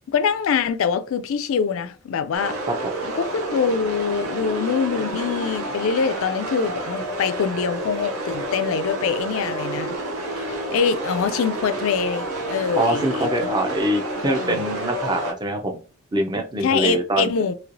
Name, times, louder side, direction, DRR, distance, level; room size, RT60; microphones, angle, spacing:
voice 1, 0.1-2.6 3.0-9.9 10.3-13.3 14.3-14.6 16.6-17.5, left 6 dB, 65° left, 0.3 m, -24 dB
sound 1, 2.3-15.3, right 1 dB, 75° right, 0.6 m, -29 dB
voice 2, 12.7-15.8 16.1-17.3, right 1 dB, 20° right, 0.4 m, -24 dB
3.0 x 2.8 x 2.5 m
head